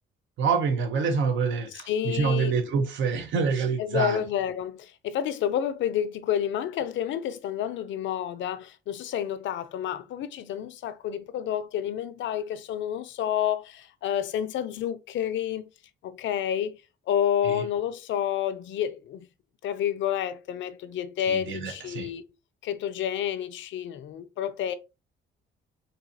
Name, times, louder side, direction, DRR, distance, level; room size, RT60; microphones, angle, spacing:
voice 1, 0.4-4.2 17.4-17.6 21.3-22.1, right 5 dB, 70° right, 0.8 m, -26 dB
voice 2, 1.7-2.6 3.8-15.7 16.0-16.8 17.1-19.3 19.6-22.2 22.6-24.7, left 10 dB, 70° left, 0.5 m, -29 dB
3.9 x 2.7 x 2.7 m
cardioid pair, 90°, 20 cm